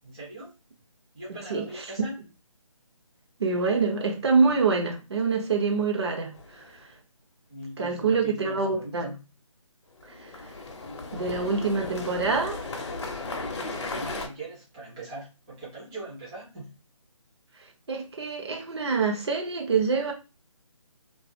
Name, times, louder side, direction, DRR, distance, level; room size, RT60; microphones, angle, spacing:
voice 1, 0.0-0.5 1.1-2.2 7.5-9.2 13.6-16.7, right 1 dB, 10° right, 0.5 m, -40 dB
voice 2, 1.5-1.8 3.4-6.7 7.8-9.0 10.1-10.4 11.1-12.8 17.9-20.1, right 4 dB, 50° right, 0.7 m, -26 dB
sound 1, 6.3-6.8 10.0-14.3, left 3 dB, 55° left, 0.5 m, -35 dB
2.4 x 2.4 x 2.6 m
figure-of-eight pair, 155°, 17 cm